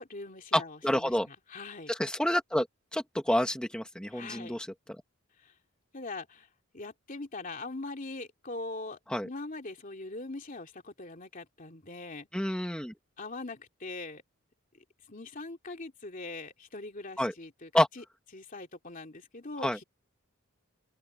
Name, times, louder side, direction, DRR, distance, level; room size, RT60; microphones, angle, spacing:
voice 1, 0.0-1.9 4.1-4.6 5.4-5.5 5.9-6.5 6.7-12.3 13.2-14.2 14.7-17.7 18.0-18.1 18.3-19.8, left 2 dB, 40° left, 2.8 m, -42 dB
voice 2, 0.5-1.3 1.9-2.7 2.9-4.7 9.1-9.3 12.3-12.9 17.2-17.3 17.7-17.9 19.6-19.8, equal, 5° left, 1.4 m, -28 dB
open air
head